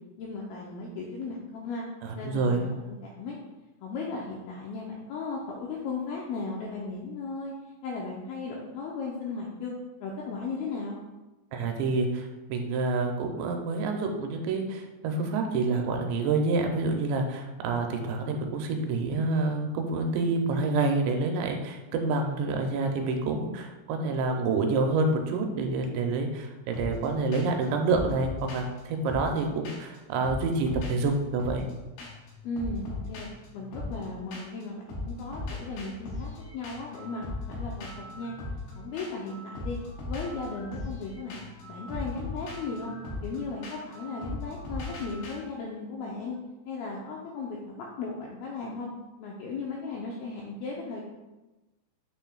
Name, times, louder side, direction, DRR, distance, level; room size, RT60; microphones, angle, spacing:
voice 1, 0.2-1.8 2.1-3.4 3.8-7.5 7.8-9.7 10.0-11.0 32.4-38.3 38.8-39.8 40.1-43.0 43.2-46.4 46.7-48.9 49.2-51.0, left 4 dB, 90° left, -2 dB, 2.2 m, -36 dB
voice 2, 2.0-2.7 11.5-31.7, right 3 dB, 85° right, 4 dB, 2.9 m, -28 dB
sound 1, 26.7-27.1 27.3-27.6 27.9-30.0 30.2-31.7 32.0-32.3 32.6-34.6 34.9-45.3, left 2 dB, 65° left, 2.8 m, -38 dB
9.1 x 5.7 x 2.3 m, 1.1 s
omnidirectional pair, 5.1 m